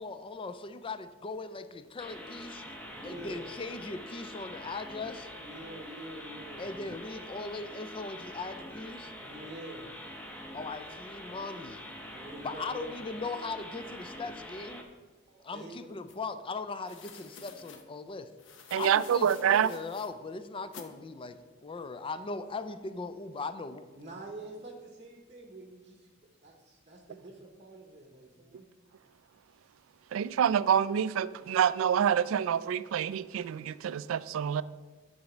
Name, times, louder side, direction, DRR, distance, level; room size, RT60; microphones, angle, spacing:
voice 1, 0.0-2.6 3.0-5.3 6.6-9.1 10.5-11.9 12.4-14.8 15.4-18.3 18.7-23.8, left 3 dB, 25° left, 0.4 m, -39 dB
sound 1, 2.0-14.8, equal, 5° left, 0.8 m, -45 dB
voice 2, 2.9-3.5 4.1-4.2 5.4-6.7 9.2-9.9 12.1-12.9 15.3-15.9 23.9-26.1 26.4-28.7, right 2 dB, 30° right, 0.9 m, -46 dB
sound 2, 16.1-16.2 16.8-17.8 18.4-20.1 20.7-20.9, left 5 dB, 65° left, 0.9 m, -50 dB
voice 3, 18.7-19.7 30.1-34.6, right 8 dB, 70° right, 0.3 m, -27 dB
9.5 x 4.1 x 6.0 m
head